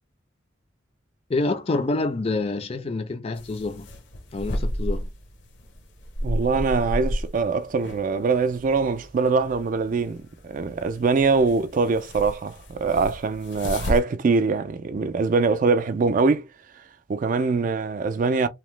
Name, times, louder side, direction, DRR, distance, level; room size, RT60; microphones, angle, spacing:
voice 1, 1.3-3.9 4.3-5.1, left 2 dB, 30° left, 0.4 m, -27 dB
sound 1, 3.4-14.0, equal, 65° left, 0.7 m, -33 dB
voice 2, 6.2-16.5 16.8-16.9 17.1-18.5, right 4 dB, 40° right, 0.3 m, -23 dB
2.8 x 2.0 x 3.1 m
head